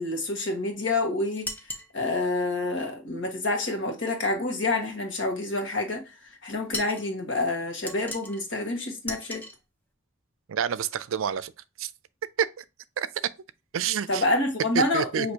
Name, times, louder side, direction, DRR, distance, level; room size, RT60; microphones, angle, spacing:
voice 1, 0.0-1.5 1.9-6.0 6.4-9.4 14.1-15.3, left 2 dB, 65° left, 1.4 m, -27 dB
sound 1, 1.4-1.9 6.7-7.1 7.9-8.4 9.1-9.6, left 1 dB, 10° left, 0.7 m, -36 dB
voice 2, 10.5-11.5 11.8-11.9 12.6-12.7 13.0-13.1 13.7-14.2 14.7-15.3, right 8 dB, 85° right, 0.4 m, -28 dB
6.1 x 2.8 x 2.8 m
head